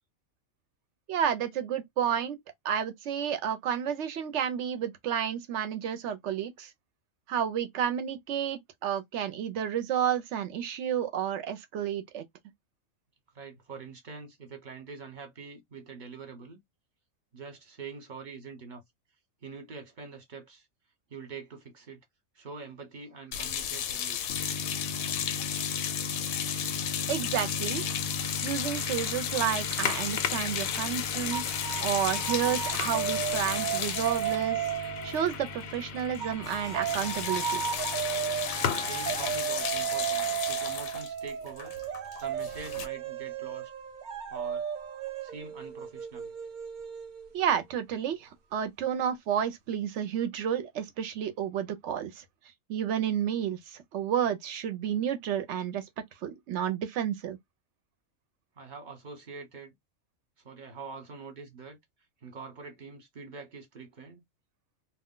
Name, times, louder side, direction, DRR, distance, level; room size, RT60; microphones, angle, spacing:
voice 1, 1.1-2.4 2.6-6.7 7.3-12.2 27.1-27.8 28.4-31.4 31.8-34.6 35.0-37.6 47.3-52.2 52.7-55.8 56.2-57.4, right 9 dB, 65° right, 0.8 m, -31 dB
voice 2, 13.3-16.6 17.3-18.8 19.4-20.7 21.1-22.0 22.3-24.2 38.5-41.8 42.2-43.7 44.3-44.7 45.2-46.3 58.6-59.7 60.4-61.8 62.2-64.2, right 4 dB, 40° right, 1.0 m, -45 dB
sound 1, 23.3-35.7 36.0-36.2 36.4-42.9, left 9 dB, 80° left, 1.0 m, -34 dB
sound 2, 24.3-39.4, left 4 dB, 65° left, 0.6 m, -37 dB
sound 3, 31.3-35.7 36.2-47.6, right 10 dB, 80° right, 0.4 m, -34 dB
2.4 x 2.2 x 3.7 m
omnidirectional pair, 1.4 m